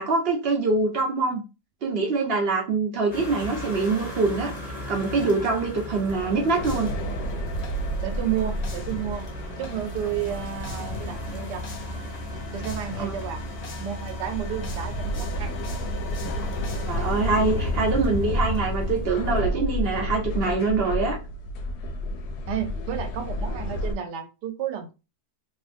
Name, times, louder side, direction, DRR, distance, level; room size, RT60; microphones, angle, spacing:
voice 1, 0.0-1.4 1.8-4.5 4.9-6.9 13.0-13.1 16.9-21.2, right 3 dB, 60° right, 1 dB, 0.6 m, -24 dB
sound 1, 3.1-19.3, equal, 30° left, 0.9 m, -39 dB
sound 2, 6.1-20.8, left 2 dB, 60° left, 0.7 m, -37 dB
sound 3, 6.6-23.9, left 1 dB, 80° left, 1.1 m, -31 dB
voice 2, 8.0-9.3 9.6-11.6 12.5-13.4 13.8-15.6 22.5-24.9, right 10 dB, 90° right, 7 dB, 1.2 m, -31 dB
2.9 x 2.5 x 2.5 m, 0.29 s
omnidirectional pair, 1.7 m